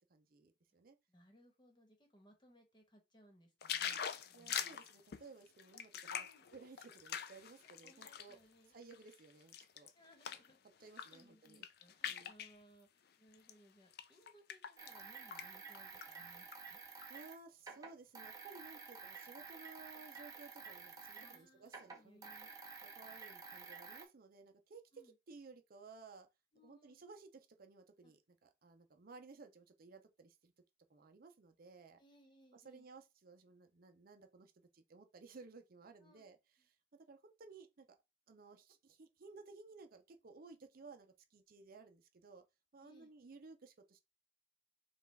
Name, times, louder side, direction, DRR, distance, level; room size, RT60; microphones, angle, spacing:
voice 1, 0.0-1.0 4.3-8.4 8.7-9.9 10.8-11.7 12.0-12.3 17.1-22.2 22.8-24.8 25.3-26.3 26.6-30.5 30.9-32.0 32.5-36.4 37.1-38.0 38.3-42.4 42.7-44.0, right 4 dB, 50° right, 0.5 m, -57 dB
voice 2, 1.1-4.9 6.1-6.5 7.6-8.8 9.9-16.8 19.9-20.1 21.2-22.5 22.8-22.9 24.9-25.1 26.5-27.0 28.0-28.1 32.0-32.9 36.0-36.3 36.6-36.7 42.8-43.1, equal, 25° left, 1.2 m, -66 dB
sound 1, 3.6-8.3 8.8-10.5 10.9-11.2 11.5-12.5 13.3-13.5 13.9-15.0 15.3-15.5 15.7-16.6 17.0-17.1, left 8 dB, 60° left, 0.4 m, -43 dB
sound 2, 14.8-21.4 21.7-24.1, right 4 dB, 20° right, 0.9 m, -51 dB
5.3 x 2.4 x 3.4 m
head